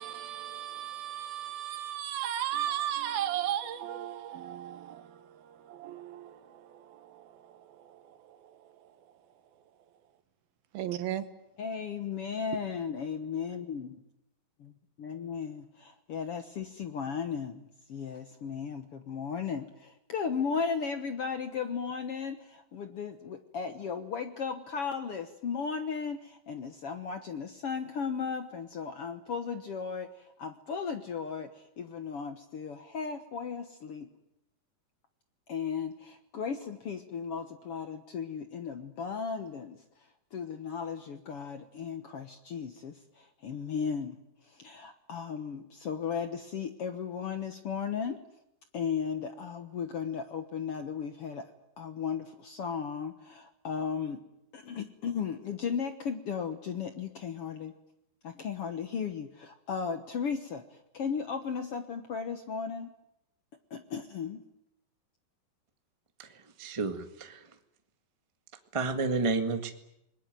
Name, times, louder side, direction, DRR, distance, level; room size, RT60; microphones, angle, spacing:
voice 1, 0.0-8.9 10.7-11.3, right 11 dB, 90° right, 3.3 m, -36 dB
voice 2, 11.6-13.9 14.6-14.7 15.0-34.1 35.5-44.2 44.4-48.2 48.7-51.5 51.8-54.2 54.5-57.7 58.2-62.9 63.7-64.4, left 6 dB, 60° left, 1.5 m, -36 dB
voice 3, 66.2-67.4 68.7-69.7, right 3 dB, 45° right, 0.4 m, -31 dB
29.5 x 20.5 x 9.1 m
omnidirectional pair, 4.1 m